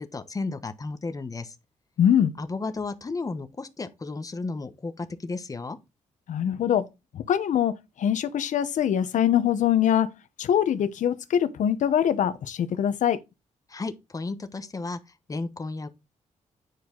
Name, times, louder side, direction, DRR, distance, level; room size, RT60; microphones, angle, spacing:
voice 1, 0.0-1.6 2.4-5.8 13.7-15.0 15.3-15.9, left 3 dB, 25° left, 1.1 m, -33 dB
voice 2, 2.0-2.3 6.3-6.9 7.1-10.1 10.4-13.2, left 9 dB, 75° left, 1.0 m, -23 dB
9.4 x 4.8 x 3.9 m
cardioid pair, 90°, 13 cm